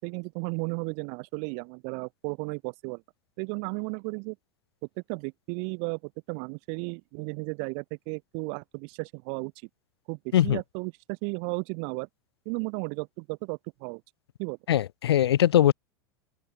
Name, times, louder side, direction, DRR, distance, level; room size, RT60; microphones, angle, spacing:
voice 1, 0.0-3.0 3.4-4.4 5.1-9.5 10.1-12.1 12.4-14.0 14.4-14.6, right 40 dB or more, 60° right, 5.0 m, -34 dB
voice 2, 14.7-15.7, left 11 dB, 90° left, 1.1 m, -21 dB
open air
hypercardioid pair, 105°, 13 cm